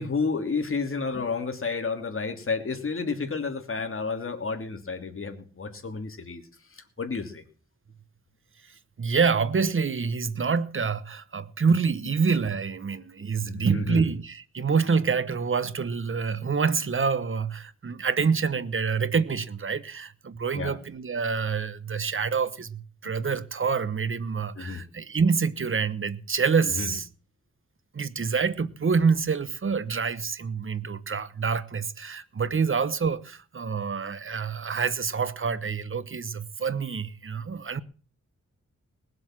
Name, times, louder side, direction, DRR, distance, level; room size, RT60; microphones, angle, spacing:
voice 1, 0.0-6.4 6.7-7.4 13.4-14.1 20.5-20.7 24.6-24.8 26.6-26.9, left 4 dB, 45° left, 2.9 m, -31 dB
voice 2, 9.0-27.1 27.9-37.8, right 5 dB, 45° right, 1.1 m, -27 dB
20.0 x 7.8 x 7.5 m
wide cardioid pair, 105°, 30 cm